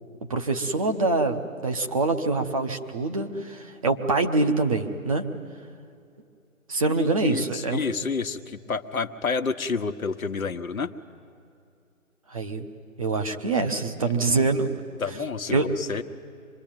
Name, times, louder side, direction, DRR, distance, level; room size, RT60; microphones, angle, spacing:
voice 1, 0.3-5.3 6.7-7.8 12.3-12.7 13.0-14.7 15.5-15.7, right 3 dB, 25° right, 5 dB, 1.0 m, -25 dB
voice 2, 7.0-10.9 15.0-16.0, left 4 dB, 75° left, 8 dB, 1.3 m, -29 dB
25.5 x 21.0 x 9.0 m, 2.5 s
hypercardioid pair, 165°, 42 cm